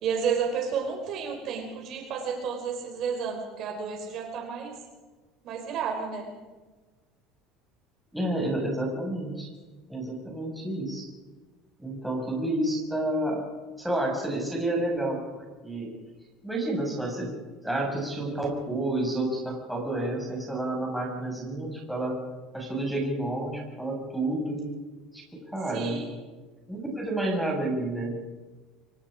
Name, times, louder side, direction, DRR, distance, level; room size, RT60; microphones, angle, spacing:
voice 1, 0.0-4.7 5.4-6.3 25.7-26.1, right 6 dB, 45° right, 3 dB, 4.6 m, -31 dB
voice 2, 8.1-9.5 9.9-11.1 11.8-13.4 13.8-15.9 16.4-17.3 17.6-22.2 22.5-24.7 25.1-26.0 26.7-28.2, right 1 dB, ahead, -2 dB, 6.2 m, -30 dB
25.0 x 23.0 x 5.1 m, 1.3 s
cardioid pair, 145°, 0 cm